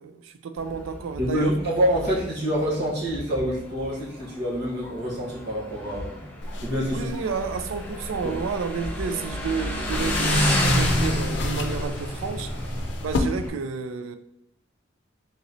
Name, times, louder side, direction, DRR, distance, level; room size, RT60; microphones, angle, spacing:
voice 1, 0.0-1.6 2.0-2.1 6.9-12.7 13.0-14.2, right 5 dB, 90° right, 0.4 m, -31 dB
Motorcycle, 0.6-13.5, equal, 10° left, 0.7 m, -30 dB
voice 2, 1.2-6.1 6.6-7.1, equal, 60° right, 1.3 m, -26 dB
sound 1, 6.4-13.2, left 2 dB, 60° left, 0.5 m, -32 dB
3.9 x 3.0 x 3.9 m
head